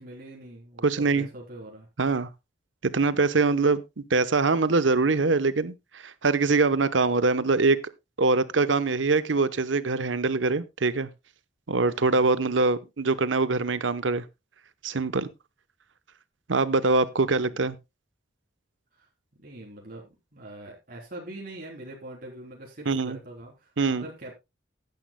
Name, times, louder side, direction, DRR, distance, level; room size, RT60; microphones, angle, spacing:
voice 1, 0.0-1.9 17.3-17.7 18.9-19.1 19.4-24.3, right 1 dB, 50° right, 3.5 m, -43 dB
voice 2, 0.8-1.3 2.0-2.3 2.8-7.8 8.2-11.1 11.7-14.2 14.8-15.3 16.5-17.8 22.9-23.2 23.8-24.1, right 3 dB, 90° right, 0.9 m, -23 dB
15.5 x 10.5 x 2.2 m
head